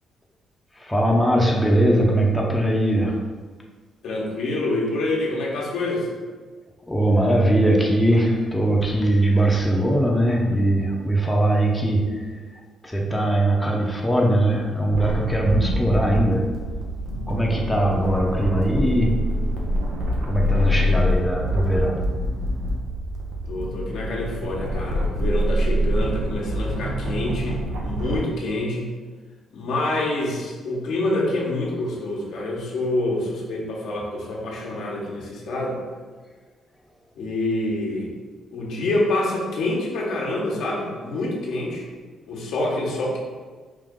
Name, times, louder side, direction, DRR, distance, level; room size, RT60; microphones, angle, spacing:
voice 1, 0.7-3.2 6.9-16.5 17.3-19.3 20.2-22.1, right 1 dB, 5° left, -2 dB, 0.7 m, -21 dB
voice 2, 4.0-6.1 23.5-28.9 29.5-35.8 37.2-38.1 38.5-41.8 42.3-43.2, left 2 dB, 75° left, -3 dB, 1.1 m, -26 dB
sound 1, 14.9-28.2, equal, 85° right, 0.8 m, -25 dB
5.1 x 2.5 x 3.7 m, 1.5 s
cardioid pair, 90°, 0 cm